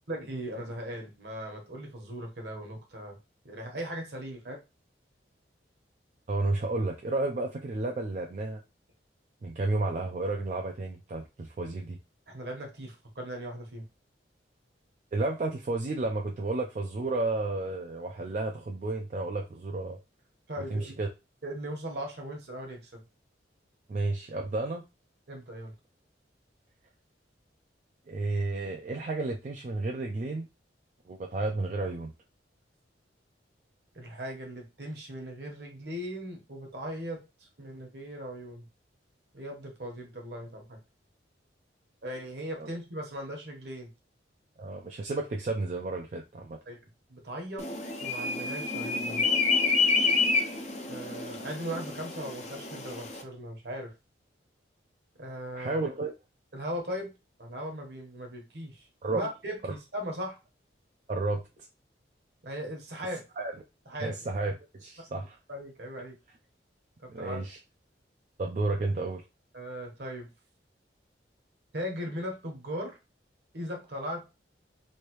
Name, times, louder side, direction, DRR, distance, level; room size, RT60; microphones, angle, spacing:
voice 1, 0.1-3.2 3.4-4.6 12.3-13.8 20.5-21.0 21.4-23.0 25.3-25.7 33.9-37.2 37.6-38.6 39.3-40.8 42.0-43.9 46.7-46.8 47.1-47.7 48.0-49.2 50.9-53.9 55.2-55.8 56.5-57.1 57.4-58.8 59.1-59.6 59.9-60.4 62.4-63.2 63.9-64.2 65.1-66.2 67.0-67.4 69.5-70.3 71.7-72.9 73.5-74.2, equal, 60° right, 2 dB, 1.1 m, -38 dB
voice 2, 6.3-8.6 9.4-12.0 15.1-20.0 20.6-21.1 23.9-24.8 28.1-30.5 31.1-32.1 42.6-42.7 44.6-46.6 55.5-56.1 59.0-59.2 59.6-59.7 61.1-61.4 63.4-63.5 64.0-65.4 67.1-67.6 68.4-69.2, right 2 dB, 40° right, 2 dB, 0.3 m, -32 dB
sound 1, 47.6-53.2, left 4 dB, 35° left, 0.5 m, -28 dB
3.2 x 2.6 x 3.0 m, 0.27 s
head